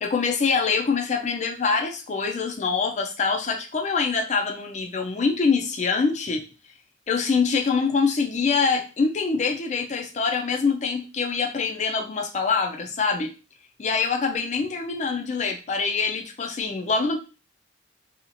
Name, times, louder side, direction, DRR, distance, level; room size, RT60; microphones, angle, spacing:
voice 1, 0.0-6.4 7.1-13.3 13.8-17.2, left 5 dB, 40° left, 3 dB, 0.4 m, -24 dB
2.9 x 2.4 x 2.5 m, 0.33 s
head